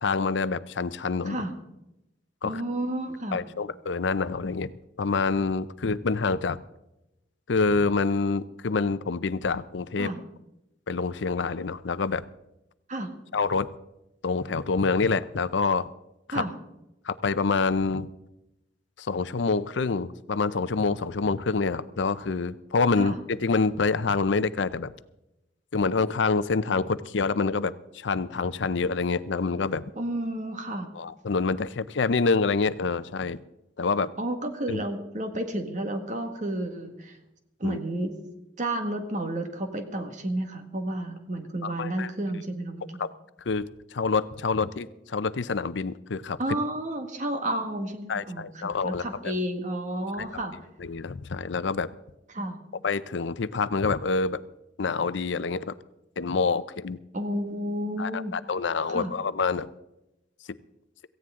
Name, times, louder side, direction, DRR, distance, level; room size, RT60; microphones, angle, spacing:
voice 1, 0.0-1.5 2.4-2.6 3.3-4.7 5.0-6.6 7.5-10.1 10.9-12.2 13.3-13.7 14.2-15.9 16.3-16.4 17.1-18.1 19.0-24.9 25.7-29.8 30.9-33.4 33.8-34.1 34.7-34.8 37.6-37.8 41.8-42.1 43.0-43.1 43.5-46.4 48.1-49.3 50.8-51.9 52.8-54.4 54.8-55.7 56.2-57.0 58.0-59.7, left 4 dB, 80° left, 15 dB, 0.6 m, -27 dB
voice 2, 2.4-3.4 10.0-10.2 12.9-13.1 16.3-16.5 23.0-23.2 30.0-30.9 34.2-37.2 37.6-38.2 38.6-42.8 46.4-50.5 52.3-52.6 57.1-58.4 58.8-59.1, right 1 dB, 45° right, 6 dB, 1.7 m, -31 dB
17.0 x 15.5 x 3.7 m, 0.90 s
head